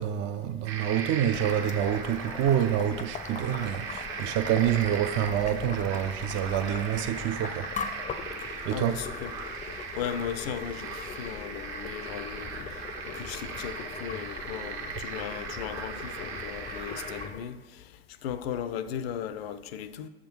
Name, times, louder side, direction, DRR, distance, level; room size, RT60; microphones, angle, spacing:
voice 1, 0.0-7.7 8.7-9.0, right 10 dB, 40° right, 0.5 m, -27 dB
sound 1, 0.7-17.3, right 5 dB, 55° right, 1.1 m, -39 dB
Boiling, 1.3-17.4, left 6 dB, 20° left, 0.5 m, -40 dB
voice 2, 8.7-9.3 10.0-17.8 18.2-20.1, left 9 dB, 65° left, 0.5 m, -37 dB
6.9 x 3.7 x 6.0 m
figure-of-eight pair, 75°, 32 cm